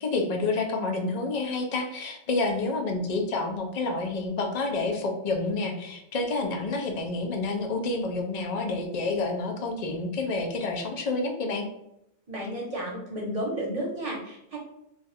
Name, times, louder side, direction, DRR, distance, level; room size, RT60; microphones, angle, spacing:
voice 1, 0.0-11.6, left 3 dB, 50° left, 2 dB, 0.5 m, -29 dB
voice 2, 12.3-14.6, right 1 dB, 35° right, -4 dB, 0.9 m, -32 dB
2.5 x 2.4 x 4.0 m, 0.82 s
omnidirectional pair, 1.2 m